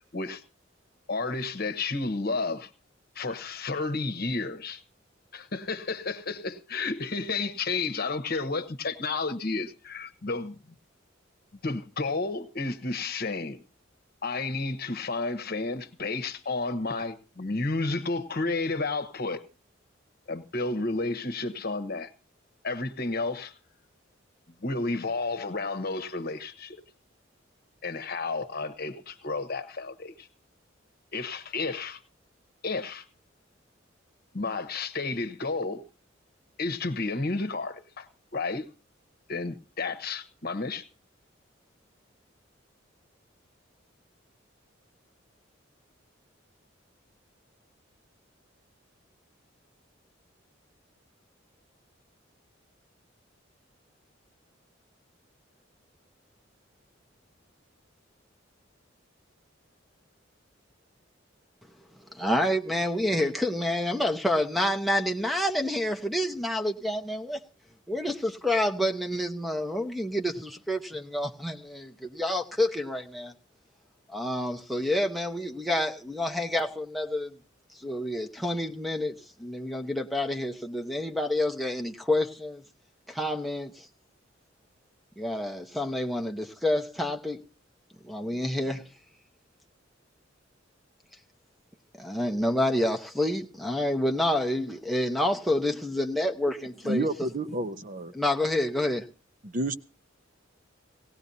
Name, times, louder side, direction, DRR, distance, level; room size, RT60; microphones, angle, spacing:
voice 1, 1.1-2.7 3.1-4.8 5.3-10.6 11.6-13.6 14.2-19.4 20.3-22.1 22.6-23.5 24.6-26.8 27.8-30.3 31.1-32.0 32.6-33.0 34.3-35.8 36.6-38.6 39.3-40.8, left 3 dB, 55° left, 1.1 m, -31 dB
voice 2, 62.1-67.4 67.9-73.3 74.1-77.4 77.7-82.6 83.1-83.9 85.2-87.4 88.0-88.8 92.0-97.1 98.1-99.1, left 1 dB, ahead, 0.9 m, -28 dB
voice 3, 96.8-98.1 99.4-99.7, right 2 dB, 45° right, 0.8 m, -30 dB
18.0 x 17.5 x 2.8 m
head